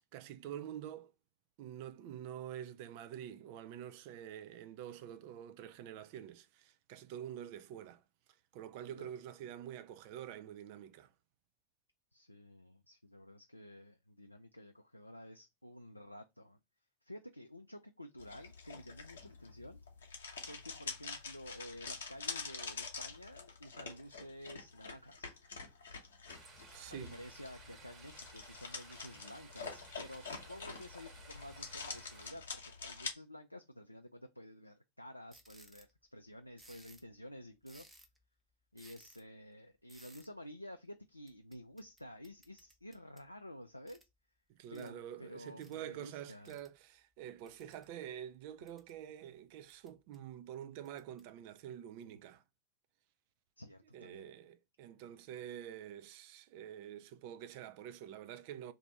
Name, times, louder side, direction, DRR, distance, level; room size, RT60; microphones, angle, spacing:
voice 1, 0.1-1.1 1.6-8.0 8.5-11.1 26.7-27.2 44.5-52.4 53.9-58.7, right 10 dB, 45° right, 0.3 m, -47 dB
voice 2, 12.1-16.6 17.0-19.8 20.4-25.3 26.9-37.9 38.7-44.0 44.7-46.6 53.6-54.3, left 1 dB, 85° left, 0.3 m, -51 dB
sound 1, 18.2-33.1, left 5 dB, 65° left, 0.8 m, -46 dB
sound 2, 26.3-32.3, right 3 dB, 30° right, 1.4 m, -57 dB
sound 3, 35.3-35.9 36.6-37.1 37.6-38.2 38.8-39.2 39.9-40.3 41.3-43.3 43.9-44.1 44.7-44.9 45.6-45.7 46.4-46.7 47.5-47.9 48.4-49.0 49.7-50.2 50.8-51.2, right 1 dB, 10° right, 0.6 m, -61 dB
2.6 x 2.5 x 4.1 m
figure-of-eight pair, 90°, 0 cm